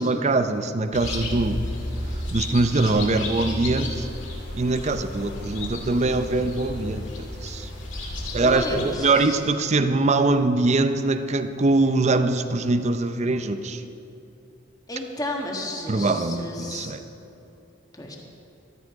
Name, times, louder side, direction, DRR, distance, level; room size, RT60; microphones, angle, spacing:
voice 1, 0.0-1.6 2.3-4.1 4.5-7.7 8.3-13.8 15.9-17.0, right 2 dB, 35° right, 9 dB, 0.6 m, -23 dB
sound 1, 0.9-9.0, left 1 dB, 70° left, 2.4 m, -32 dB
voice 2, 8.4-9.3 14.9-16.9 17.9-18.2, left 1 dB, 20° left, 0 dB, 1.6 m, -32 dB
15.0 x 12.5 x 4.7 m, 2.8 s
head